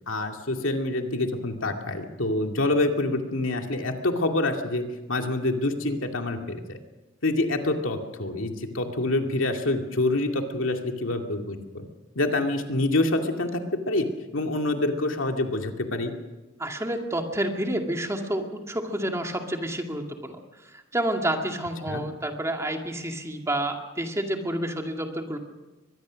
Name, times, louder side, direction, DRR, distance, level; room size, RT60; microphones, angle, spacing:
voice 1, 0.1-6.8 7.2-11.8 12.2-14.1 14.3-16.1 21.9-22.0, left 2 dB, 85° left, 3 dB, 2.3 m, -26 dB
voice 2, 16.6-20.4 20.9-25.4, right 1 dB, 15° right, 3 dB, 2.2 m, -29 dB
23.0 x 21.0 x 6.3 m, 1.1 s
head